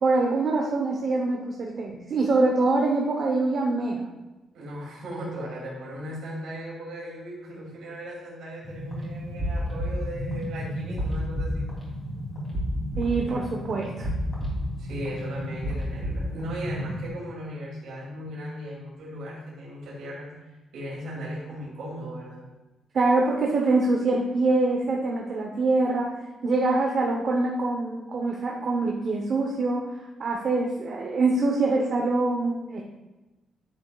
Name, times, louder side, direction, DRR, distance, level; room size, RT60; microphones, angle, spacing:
voice 1, 0.0-4.1 13.0-14.1 22.9-26.1 26.4-29.9 30.2-32.8, right 3 dB, 40° right, -1 dB, 0.8 m, -24 dB
voice 2, 4.5-11.7 13.1-13.6 14.8-20.3 20.7-22.4, equal, 80° right, -5 dB, 2.5 m, -37 dB
sound 1, 8.6-17.1, equal, 15° left, 2.8 m, -31 dB
10.5 x 8.5 x 2.3 m, 1.1 s
cardioid pair, 170°, 0 cm